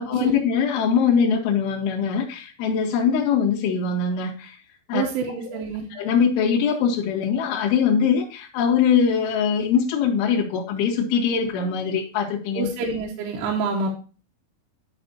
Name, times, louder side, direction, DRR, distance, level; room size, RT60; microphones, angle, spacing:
voice 1, 0.0-4.6 4.9-5.0 5.5-5.6 6.0-12.7, left 6 dB, 70° left, -5 dB, 4.2 m, -22 dB
voice 2, 4.9-5.9 12.6-13.9, right 4 dB, 80° right, -2 dB, 3.2 m, -27 dB
13.5 x 5.3 x 2.7 m, 0.37 s
omnidirectional pair, 5.9 m